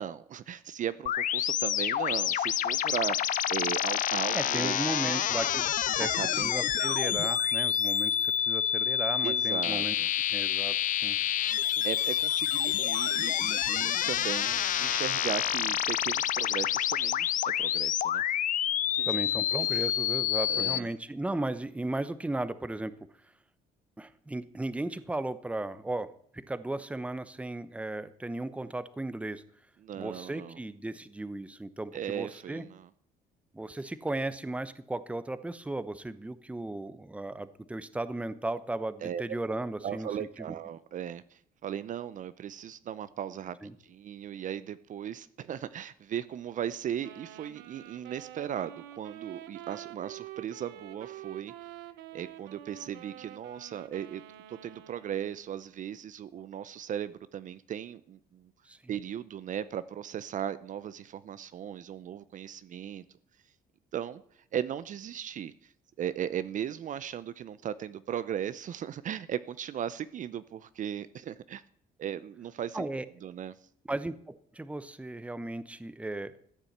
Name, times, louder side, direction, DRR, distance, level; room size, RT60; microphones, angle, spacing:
voice 1, 0.0-5.2 6.0-6.6 6.9-7.0 9.2-10.1 11.8-18.2 18.9-19.1 19.6-19.8 20.5-20.9 29.8-30.6 31.9-32.9 39.0-39.2 39.8-43.6 43.8-51.5 52.1-54.2 54.5-58.5 58.9-63.0 63.9-64.2 64.5-65.7 66.0-71.6 72.0-72.9 73.2-73.5, right 9 dB, 50° right, 0.7 m, -37 dB
sound 1, 1.1-20.8, left 10 dB, 50° left, 0.6 m, -28 dB
voice 2, 4.3-10.0 10.3-11.2 19.0-22.9 24.0-29.4 29.9-32.7 33.5-40.5 43.6-43.7 58.7-58.8 72.7-73.0 73.9-76.4, right 2 dB, 5° right, 0.9 m, -36 dB
Wind instrument woodwind instrument, 47.0-55.5, right 13 dB, 90° right, 1.1 m, -47 dB
14.5 x 8.9 x 8.0 m
cardioid pair, 110°, 17 cm